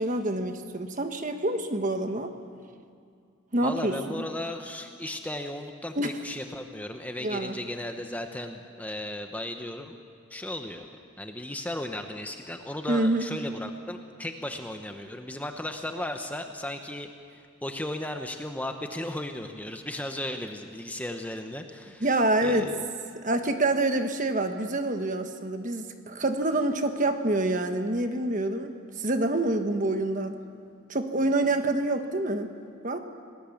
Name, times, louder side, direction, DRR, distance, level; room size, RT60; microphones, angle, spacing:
voice 1, 0.0-2.3 3.5-4.2 6.0-6.1 7.2-7.6 12.9-13.2 22.0-22.7 23.2-28.7 29.0-30.3 30.9-32.5 32.8-33.0, right 2 dB, 35° right, 6 dB, 1.3 m, -26 dB
voice 2, 3.6-10.0 10.3-10.9 11.2-22.1 22.4-22.8, left 1 dB, 5° left, 5 dB, 0.9 m, -35 dB
27.5 x 19.0 x 7.2 m, 2.3 s
head